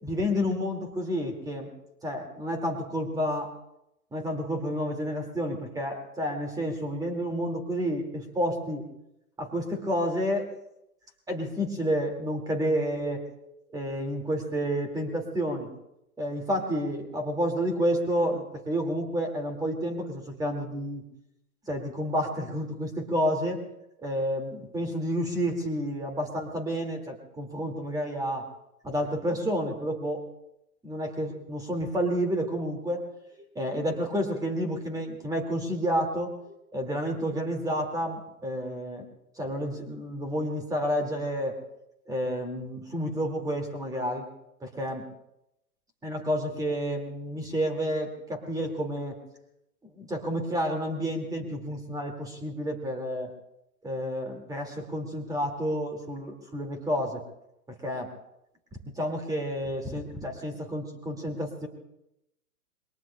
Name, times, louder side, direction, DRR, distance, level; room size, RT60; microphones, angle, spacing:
voice 1, 0.0-1.7 2.0-3.5 4.1-8.8 9.4-10.5 11.3-13.2 13.7-15.7 16.2-21.0 21.7-23.6 24.0-28.5 28.8-30.2 30.8-33.0 33.3-39.1 39.4-41.6 42.1-44.3 44.6-45.1 46.0-49.2 49.9-53.3 53.8-57.2 57.8-58.1 58.9-61.7, equal, 10° right, 4 dB, 2.0 m, -30 dB
28.0 x 22.5 x 2.2 m, 0.85 s
hypercardioid pair, 130°, 47 cm